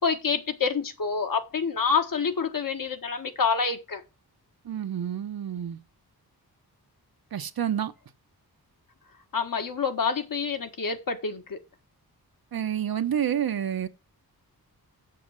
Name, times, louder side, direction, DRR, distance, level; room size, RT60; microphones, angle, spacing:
voice 1, 0.0-4.0 9.3-11.6, left 5 dB, 60° left, 1.6 m, -27 dB
voice 2, 4.6-5.8 7.3-7.9 12.5-13.9, right 9 dB, 65° right, 1.0 m, -28 dB
7.2 x 7.0 x 6.4 m
wide cardioid pair, 105°, 38 cm